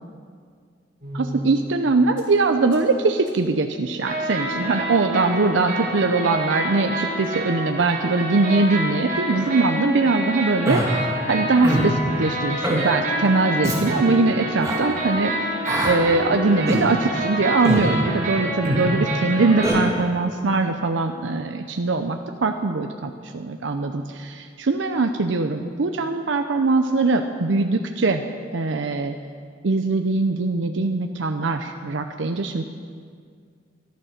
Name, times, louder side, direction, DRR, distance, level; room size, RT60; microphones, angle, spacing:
sound 1, 1.0-1.8 2.2-2.3 2.7-2.8 3.3-3.4 4.0-19.7, right 1 dB, 45° right, 3.5 m, -28 dB
voice 1, 1.1-15.3 15.8-28.2 28.5-29.1 29.6-32.6, right 3 dB, 85° right, 6 dB, 0.6 m, -22 dB
Human voice, 10.6-10.9 11.6-11.9 12.6-12.8 13.6-13.8 14.6-14.8 15.6-16.0 16.7-16.9 17.6-17.9 18.6-18.8 19.6-19.8, equal, 15° right, 2.1 m, -22 dB
Wind instrument woodwind instrument, 12.9-17.5, left 9 dB, 45° left, 1.0 m, -38 dB
12.5 x 12.0 x 6.6 m, 2.1 s
head